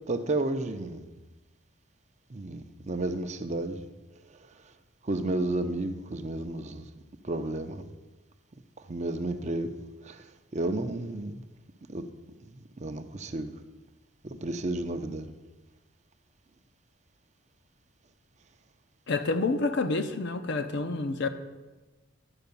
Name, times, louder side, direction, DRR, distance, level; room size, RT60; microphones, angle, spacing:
voice 1, 0.1-1.1 2.3-3.8 4.3-4.7 5.0-6.9 7.2-7.9 8.8-9.8 10.0-11.4 11.9-12.1 12.4-13.5 14.2-15.3, right 2 dB, 35° right, 8 dB, 0.6 m, -32 dB
voice 2, 19.1-21.3, left 3 dB, 60° left, 8 dB, 0.7 m, -28 dB
10.5 x 4.8 x 6.9 m, 1.2 s
head